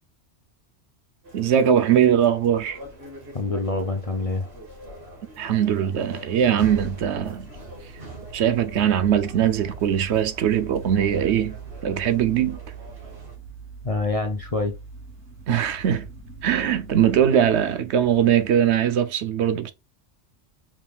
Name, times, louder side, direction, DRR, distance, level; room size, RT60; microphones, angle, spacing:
sound 1, 1.2-13.3, right 1 dB, 55° right, 2.2 m, -43 dB
voice 1, 1.3-2.8 5.4-7.5 8.3-11.6 11.8-12.6 15.5-16.1 16.4-19.7, right 9 dB, 70° right, 0.8 m, -21 dB
voice 2, 3.3-4.4 13.8-14.7, left 3 dB, 40° left, 0.5 m, -26 dB
sound 2, 6.2-18.8, right 6 dB, 90° right, 2.5 m, -42 dB
4.8 x 3.7 x 2.3 m
omnidirectional pair, 1.3 m